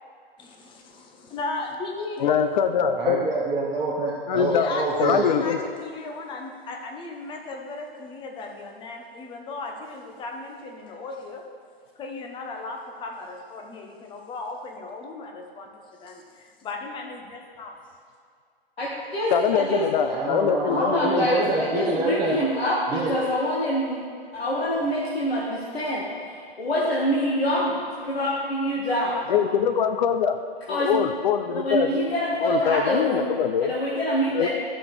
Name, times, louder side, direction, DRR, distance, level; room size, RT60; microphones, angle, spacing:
voice 1, 0.4-2.3 4.3-11.4 12.0-15.7 16.0-16.2 16.6-17.7, left 3 dB, 15° left, 2 dB, 0.9 m, -36 dB
voice 2, 2.2-3.3 4.3-4.7 5.0-5.6 19.3-21.5 29.3-30.4 30.7-31.9 32.4-33.7 34.3-34.5, left 7 dB, 50° left, 9 dB, 0.6 m, -23 dB
voice 3, 3.0-5.2 20.1-22.4 22.9-23.1, right 3 dB, 15° right, -6 dB, 0.9 m, -26 dB
voice 4, 18.8-19.9 20.6-24.1 24.3-26.1 26.6-27.8 28.1-29.2 30.7-31.0 31.5-33.3 33.6-34.5, equal, 75° left, -6 dB, 1.7 m, -25 dB
13.0 x 6.2 x 3.4 m, 2.2 s
hypercardioid pair, 125°, 31 cm